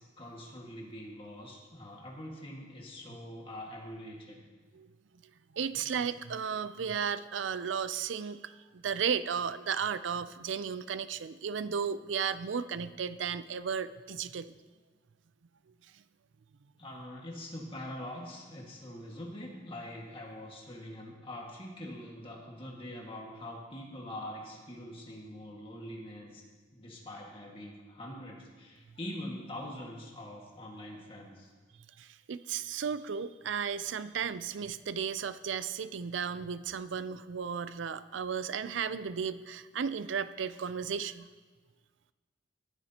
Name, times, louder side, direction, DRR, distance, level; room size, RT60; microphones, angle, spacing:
voice 1, 0.0-4.4 5.9-6.1 16.8-26.4 26.7-31.5, left 1 dB, 30° left, -2 dB, 1.8 m, -44 dB
voice 2, 5.5-14.5 32.0-41.3, right 7 dB, 85° right, 14 dB, 0.5 m, -34 dB
18.5 x 11.0 x 2.9 m, 1.4 s
head